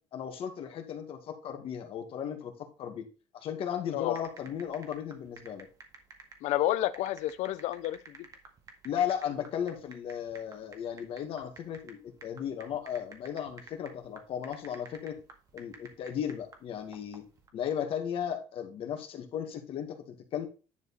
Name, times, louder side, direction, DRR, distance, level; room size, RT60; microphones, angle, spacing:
voice 1, 0.1-3.1 3.3-5.7 8.8-15.2 15.5-17.2 17.5-20.5, left 9 dB, 50° left, 2.1 m, -35 dB
sound 1, 4.1-17.5, right 4 dB, 30° right, 1.9 m, -52 dB
voice 2, 6.4-8.2, left 14 dB, 90° left, 0.7 m, -30 dB
10.5 x 5.1 x 4.2 m
cardioid pair, 165°, 12 cm